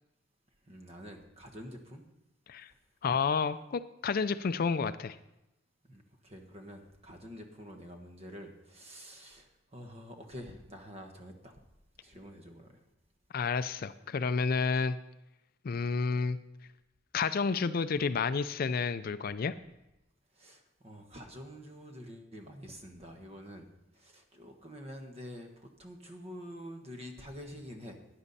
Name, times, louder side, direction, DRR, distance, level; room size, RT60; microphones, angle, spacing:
voice 1, 0.7-2.0 5.8-11.6 12.0-12.8 20.3-23.7 23.9-28.0, equal, 30° right, 4 dB, 1.4 m, -47 dB
voice 2, 3.0-5.2 13.3-15.0 15.6-16.4 17.1-19.5, left 5 dB, 50° left, 13 dB, 0.4 m, -30 dB
12.5 x 10.0 x 4.1 m, 0.90 s
head